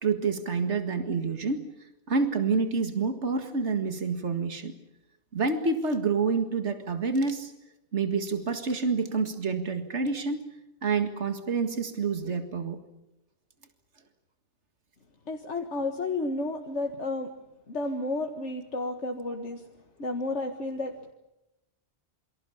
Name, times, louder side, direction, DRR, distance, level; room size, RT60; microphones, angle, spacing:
voice 1, 0.0-1.7 2.1-4.7 5.3-7.5 7.9-10.4 10.8-12.8, right 4 dB, 80° right, 8 dB, 2.2 m, -28 dB
voice 2, 15.3-17.3 17.7-19.6 20.0-20.9, left 2 dB, 85° left, 3 dB, 2.1 m, -31 dB
28.0 x 24.5 x 7.2 m, 0.89 s
omnidirectional pair, 1.2 m